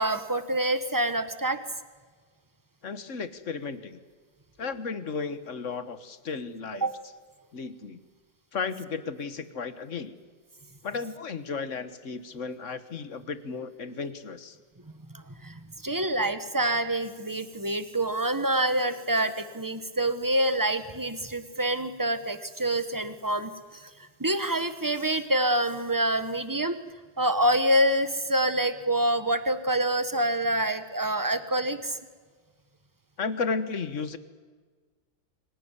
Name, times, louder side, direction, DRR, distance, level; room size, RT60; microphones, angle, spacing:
voice 1, 0.0-1.6 6.8-6.9 15.1-23.9 24.2-26.8 27.2-32.0, right 1 dB, 15° right, 10 dB, 0.8 m, -26 dB
voice 2, 2.8-4.0 4.6-6.9 7.5-8.0 8.5-10.2 10.8-14.6 33.2-34.2, left 5 dB, 45° left, 12 dB, 1.4 m, -34 dB
25.0 x 17.5 x 9.8 m, 1.5 s
omnidirectional pair, 2.2 m